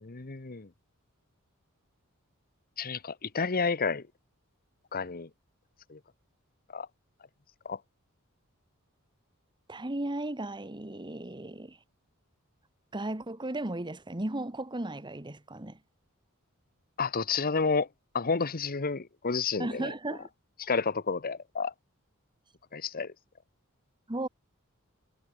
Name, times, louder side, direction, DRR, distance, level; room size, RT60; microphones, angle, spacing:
voice 1, 0.0-0.7 2.8-4.0 4.9-5.3 5.9-6.0 6.7-6.9 7.6-7.8 17.0-17.9 18.1-19.9 20.6-21.7 22.7-23.1, left 5 dB, 45° left, 1.0 m, -30 dB
voice 2, 9.7-11.8 12.9-15.8 19.6-20.3 24.1-24.3, right 1 dB, 20° right, 1.4 m, -35 dB
head